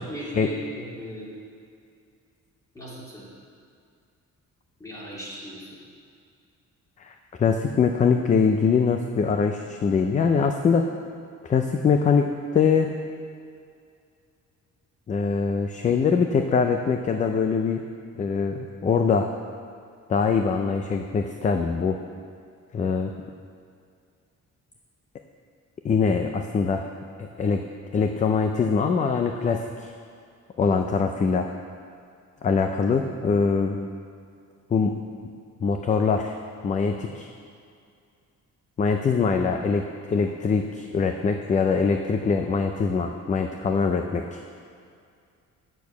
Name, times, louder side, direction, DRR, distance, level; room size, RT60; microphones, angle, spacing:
voice 1, 0.1-1.3 2.7-3.3 4.8-5.7 39.3-39.5, equal, 10° left, -6 dB, 2.2 m, -37 dB
voice 2, 7.0-10.9 11.4-12.3 12.5-12.9 15.1-17.8 18.2-19.3 20.1-22.0 22.7-23.1 25.8-26.9 27.2-27.7 27.9-29.9 30.6-31.5 32.4-33.9 34.7-35.0 35.6-36.4 36.6-37.3 38.8-44.4, left 5 dB, 25° left, 5 dB, 0.4 m, -23 dB
8.3 x 6.8 x 7.0 m, 2.3 s
cardioid pair, 170°, 30 cm